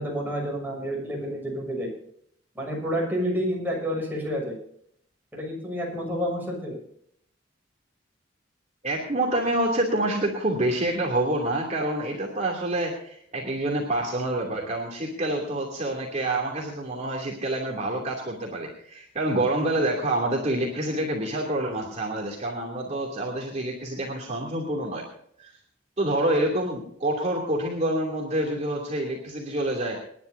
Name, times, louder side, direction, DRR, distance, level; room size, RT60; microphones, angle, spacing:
voice 1, 0.0-1.9 2.5-4.6 5.3-6.8, equal, 10° right, -2 dB, 6.6 m, -29 dB
voice 2, 8.8-25.0 25.4-25.5 26.0-30.0, right 1 dB, 40° right, -1 dB, 2.8 m, -27 dB
28.0 x 11.0 x 2.7 m, 0.68 s
head